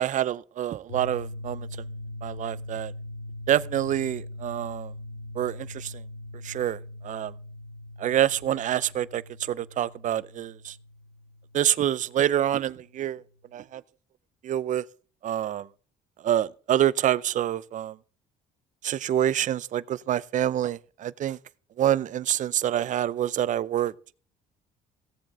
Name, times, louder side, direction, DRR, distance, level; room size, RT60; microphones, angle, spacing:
voice 1, 0.0-1.7 2.2-2.9 3.5-4.9 5.4-5.9 6.4-6.8 7.0-7.3 8.0-10.8 11.5-13.2 13.5-13.8 14.4-14.8 15.2-15.7 16.2-18.0 18.8-21.4 21.8-23.9, right 11 dB, 50° right, 0.5 m, -26 dB
sound 1, 0.9-12.8, left 1 dB, 90° left, 2.9 m, -41 dB
16.5 x 7.5 x 3.8 m
cardioid pair, 110°, 17 cm